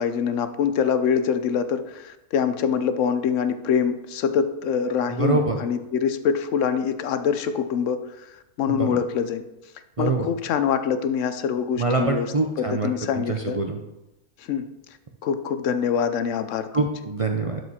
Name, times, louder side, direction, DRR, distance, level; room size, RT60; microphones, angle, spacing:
voice 1, 0.0-8.0 8.6-9.4 10.0-12.3 12.6-13.6 14.5-14.7 15.2-16.9, left 7 dB, 65° left, 10 dB, 0.9 m, -24 dB
voice 2, 5.1-5.6 8.7-9.0 10.0-10.3 11.8-13.8 16.7-17.6, right 3 dB, 45° right, 2 dB, 0.4 m, -25 dB
12.0 x 5.0 x 4.2 m, 0.95 s
omnidirectional pair, 1.6 m